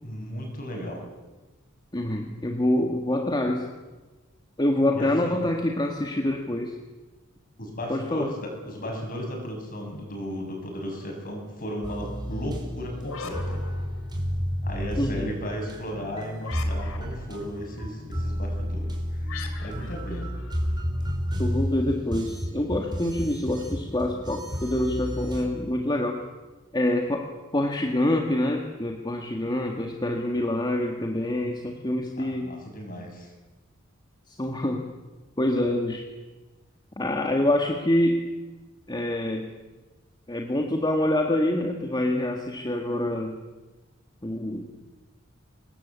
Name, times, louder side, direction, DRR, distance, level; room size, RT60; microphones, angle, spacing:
voice 1, 0.0-1.0 4.9-5.4 7.6-13.6 14.6-19.3 19.6-20.4 32.2-33.3, equal, 45° left, 2 dB, 7.7 m, -35 dB
voice 2, 1.9-3.7 4.6-6.8 7.9-8.3 15.0-15.3 21.4-26.3 26.7-32.6 34.3-34.9 35.4-36.1 37.0-38.3 38.9-39.5 40.3-43.4 44.2-44.7, left 1 dB, 20° left, 2 dB, 2.0 m, -26 dB
sound 1, 11.8-25.4, equal, 20° right, 4.6 m, -31 dB
sound 2, 13.0-14.5 16.4-17.4 19.3-21.1, left 5 dB, 85° left, 3.2 m, -41 dB
25.0 x 20.5 x 8.4 m, 1.2 s
head